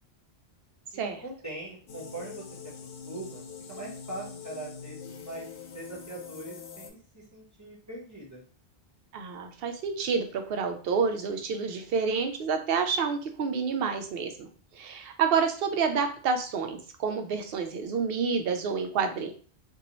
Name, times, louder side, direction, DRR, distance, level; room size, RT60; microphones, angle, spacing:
voice 1, 0.9-2.5 3.0-8.4, right 2 dB, 15° right, -5 dB, 0.9 m, -42 dB
sound 1, 1.9-6.9, left 6 dB, 85° left, 0.9 m, -44 dB
voice 2, 9.1-14.5 14.7-19.3, right 5 dB, 65° right, 6 dB, 0.7 m, -29 dB
2.6 x 2.3 x 2.9 m, 0.40 s
omnidirectional pair, 1.1 m